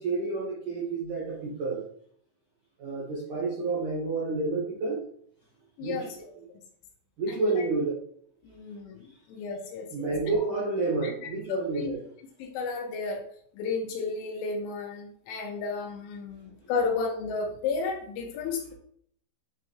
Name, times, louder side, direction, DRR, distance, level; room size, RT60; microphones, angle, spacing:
voice 1, 0.0-1.9 2.8-5.0 5.8-6.1 6.4-6.5 7.2-7.9 9.1-9.2 9.9-12.0, right 3 dB, 75° right, -5 dB, 1.8 m, -29 dB
voice 2, 5.8-6.2 7.3-7.7 8.4-10.1 11.0-11.9 12.4-13.2 13.5-18.7, left 4 dB, 85° left, 2 dB, 3.0 m, -33 dB
9.3 x 3.4 x 3.0 m, 0.64 s
omnidirectional pair, 6.0 m